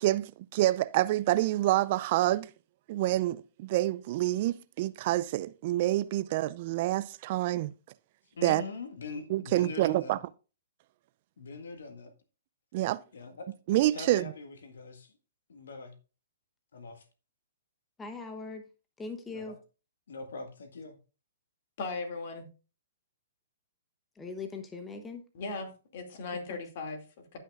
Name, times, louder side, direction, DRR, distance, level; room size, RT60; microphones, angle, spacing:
voice 1, 0.0-2.5 2.9-7.7 8.4-8.6 9.3-10.2 12.7-13.0 13.7-14.3, right 15 dB, 45° right, 0.4 m, -27 dB
voice 2, 8.3-10.2 11.4-12.1 13.1-13.5 13.9-15.1 15.5-15.9 16.7-17.0 19.2-19.6 20.1-21.0, left 4 dB, 70° left, 1.8 m, -42 dB
voice 3, 18.0-18.6 19.0-19.6 24.2-25.2 26.5-26.6, left 4 dB, 15° left, 1.0 m, -40 dB
voice 4, 21.8-22.5 25.3-27.4, left 3 dB, 50° left, 2.4 m, -38 dB
16.0 x 5.8 x 2.5 m
hypercardioid pair, 120°, 0 cm